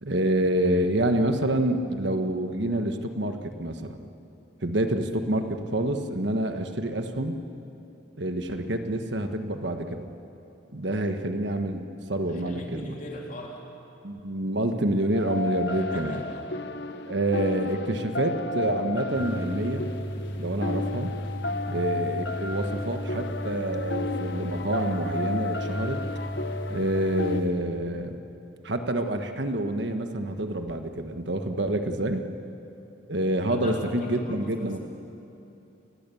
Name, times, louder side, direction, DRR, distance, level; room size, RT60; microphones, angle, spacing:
voice 1, 0.0-4.1 4.6-7.4 8.2-10.1 10.7-12.9 14.0-16.2 17.0-19.9 20.4-21.1 21.7-26.0 26.7-28.2 28.6-32.2 33.1-34.8, right 1 dB, 65° right, 6 dB, 1.4 m, -27 dB
voice 2, 12.3-13.6 15.8-16.4 33.5-34.8, equal, 45° left, -1 dB, 3.6 m, -40 dB
sound 1, 15.1-27.4, left 3 dB, 60° left, 0.9 m, -33 dB
sound 2, 19.1-27.5, right 1 dB, 75° left, 4.0 m, -35 dB
28.5 x 18.5 x 7.1 m, 2.9 s
head